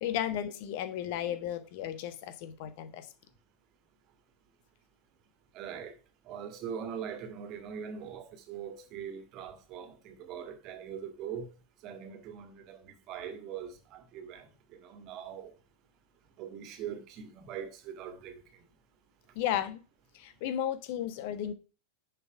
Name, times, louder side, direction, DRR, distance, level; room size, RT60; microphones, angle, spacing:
voice 1, 0.0-3.1 19.3-19.8 20.1-21.5, left 10 dB, 50° left, 1.3 m, -34 dB
voice 2, 5.5-6.0 6.3-11.5 11.8-15.5 16.4-18.4, right 8 dB, 40° right, 1.8 m, -42 dB
10.5 x 6.1 x 4.7 m
figure-of-eight pair, 90°, 0 cm